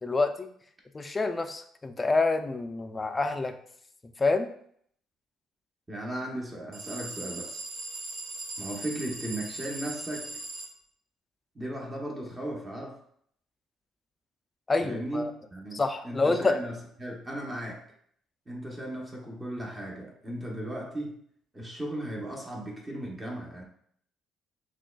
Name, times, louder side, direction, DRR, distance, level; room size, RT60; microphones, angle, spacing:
voice 1, 0.0-0.5 0.9-3.6 4.2-4.5 14.7-15.3 15.7-16.6, left 3 dB, 20° left, 7 dB, 0.4 m, -27 dB
voice 2, 5.9-7.6 8.6-10.4 11.5-13.0 14.8-17.8 18.5-21.2 21.5-23.6, right 1 dB, 20° right, -2 dB, 0.9 m, -36 dB
sound 1, 6.7-10.7, right 2 dB, 65° right, 1.0 m, -39 dB
6.1 x 2.4 x 2.3 m, 0.64 s
cardioid pair, 115°, 0 cm